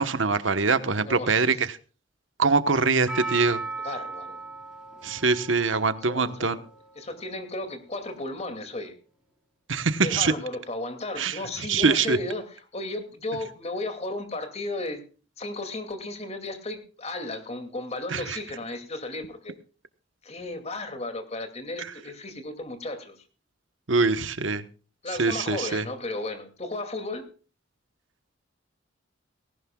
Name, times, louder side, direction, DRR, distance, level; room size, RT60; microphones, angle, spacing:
voice 1, 0.0-1.7 2.4-3.6 5.0-6.6 9.7-10.3 11.2-12.2 18.1-18.4 23.9-24.6 25.2-25.8, right 4 dB, 85° right, 12 dB, 1.2 m, -23 dB
voice 2, 0.9-1.5 3.8-4.4 6.1-6.6 7.0-8.9 10.0-15.0 15.4-19.5 20.2-23.2 25.0-27.3, left 2 dB, 35° left, 8 dB, 2.5 m, -34 dB
Percussion, 3.1-7.4 8.1-8.2, right 3 dB, 5° right, 6.3 m, -37 dB
18.5 x 17.5 x 2.4 m, 0.35 s
head